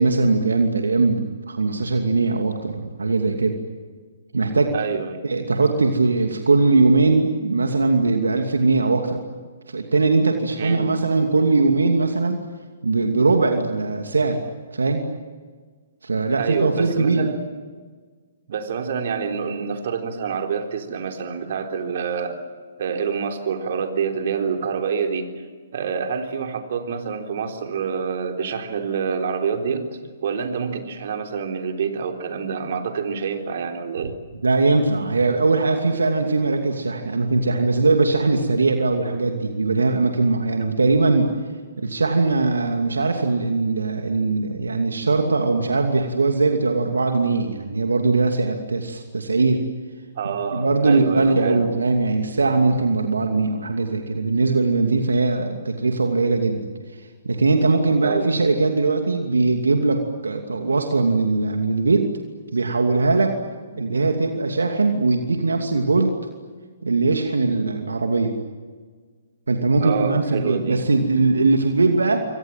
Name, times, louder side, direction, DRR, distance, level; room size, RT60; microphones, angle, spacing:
voice 1, 0.0-3.6 4.3-4.7 5.2-9.2 9.7-12.4 12.8-14.4 14.7-15.1 16.0-17.3 34.4-41.3 41.8-49.6 50.5-56.6 57.2-62.1 62.5-63.3 63.8-66.1 66.8-68.3 69.5-72.3, right 3 dB, 80° right, 4 dB, 2.7 m, -20 dB
voice 2, 4.7-5.2 10.6-10.9 16.4-17.4 18.5-22.4 22.8-25.3 25.7-34.1 50.2-51.7 58.0-58.3 63.7-63.9 69.8-70.8, right 6 dB, 55° right, 4 dB, 3.9 m, -27 dB
27.5 x 25.0 x 7.7 m, 1.5 s
figure-of-eight pair, 130°, 0 cm